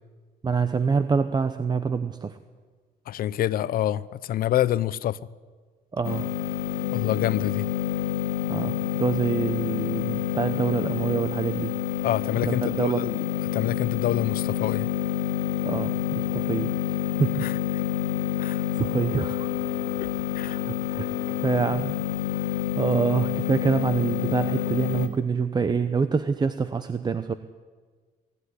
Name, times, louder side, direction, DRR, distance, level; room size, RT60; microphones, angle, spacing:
voice 1, 0.4-2.4 5.9-6.3 8.5-11.8 12.5-13.1 15.6-16.7 17.2-17.3 18.4-19.5 20.4-21.1 21.4-27.3, right 5 dB, 25° right, 0.9 m, -26 dB
voice 2, 3.1-5.2 6.9-7.7 12.0-13.2 13.5-14.9 17.4-17.5 18.4-18.6 20.0-20.1 20.3-20.6, left 12 dB, 60° left, 0.7 m, -26 dB
sound 1, 6.0-25.1, left 11 dB, 80° left, 1.9 m, -28 dB
22.5 x 14.0 x 9.9 m
cardioid pair, 110°, 17 cm